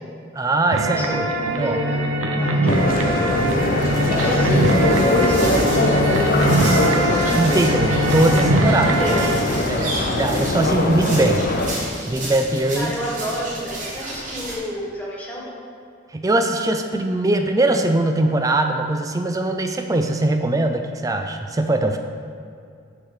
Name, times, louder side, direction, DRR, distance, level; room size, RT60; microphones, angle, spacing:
voice 1, 0.3-1.1 1.6-1.8 2.4-2.5 7.3-8.9 9.4-11.4 12.1-12.9 16.1-22.0, right 2 dB, 15° right, 5 dB, 0.3 m, -21 dB
sound 1, 0.7-9.4, right 1 dB, 80° right, 0.6 m, -21 dB
voice 2, 1.5-2.0 2.3-3.1 4.1-4.7 5.1-5.7 6.2-6.9 7.5-7.6 8.8-9.3 12.7-15.6, equal, 10° left, -5 dB, 1.0 m, -30 dB
sound 2, 2.7-11.7, left 2 dB, 45° left, 0.6 m, -21 dB
sound 3, 3.8-14.6, right 1 dB, 40° right, 1.3 m, -32 dB
6.4 x 3.9 x 6.1 m, 2.3 s
head